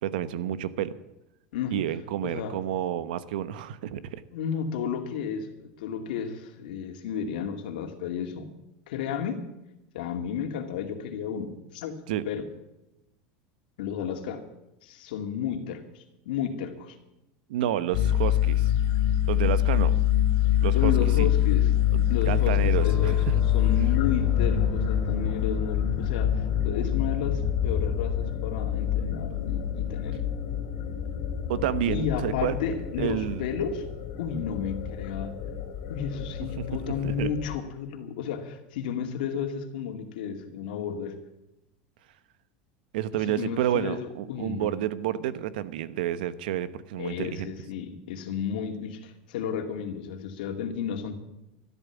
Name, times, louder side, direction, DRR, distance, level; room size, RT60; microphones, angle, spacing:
voice 1, 0.0-0.9 1.7-4.2 12.1-12.2 17.5-18.7 19.3-20.0 20.6-21.3 21.9-23.4 31.5-32.6 33.0-33.4 36.6-36.7 37.0-37.3 42.9-47.5, right 11 dB, 85° right, 15 dB, 1.1 m, -30 dB
voice 2, 2.2-2.6 4.3-8.5 8.9-9.5 9.9-12.5 13.8-14.4 14.8-17.0 20.7-21.7 22.1-23.2 23.5-30.2 31.9-33.8 34.2-35.4 35.9-41.2 43.3-44.7 47.0-51.1, left 7 dB, 80° left, 5 dB, 2.4 m, -32 dB
sound 1, 17.9-37.6, left 11 dB, 55° left, 2.3 m, -26 dB
sound 2, 22.7-32.3, right 2 dB, 10° right, 2.1 m, -42 dB
13.5 x 12.5 x 7.2 m, 0.91 s
supercardioid pair, 160°, 5 cm